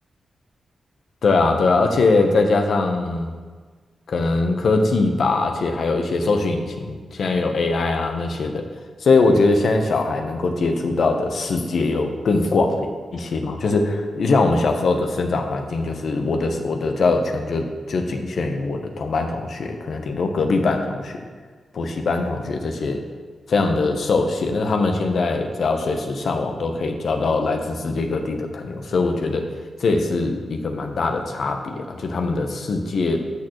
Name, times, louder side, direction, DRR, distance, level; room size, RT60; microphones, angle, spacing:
voice 1, 1.2-3.3 4.1-8.6 9.0-12.9 13.1-21.3 21.7-23.0 23.5-29.5 29.8-33.2, left 3 dB, 70° left, 5 dB, 0.9 m, -22 dB
12.5 x 6.2 x 3.1 m, 1.5 s
cardioid pair, 55°, 0 cm